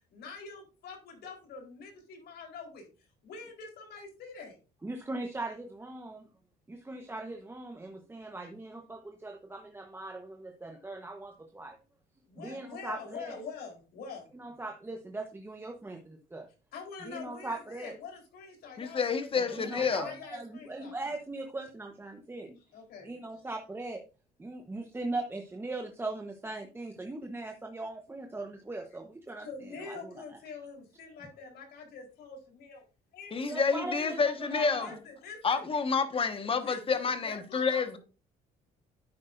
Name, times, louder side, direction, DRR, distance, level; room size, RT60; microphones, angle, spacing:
voice 1, 0.1-2.9 3.2-4.6 12.3-14.3 16.7-21.0 22.6-23.5 29.4-32.8 33.1-33.5 34.0-34.1 34.7-35.7 36.6-38.0, left 5 dB, 70° left, 4.0 m, -45 dB
voice 2, 4.8-6.2 6.7-11.8 12.4-13.4 14.4-16.5 17.0-17.9 19.4-22.6 23.0-24.0 24.4-30.2 33.5-34.9, right 2 dB, 15° right, 1.1 m, -40 dB
voice 3, 18.8-20.1 33.3-35.0 35.4-38.0, left 5 dB, 35° left, 1.5 m, -29 dB
11.0 x 8.6 x 2.6 m
cardioid pair, 110°, 17 cm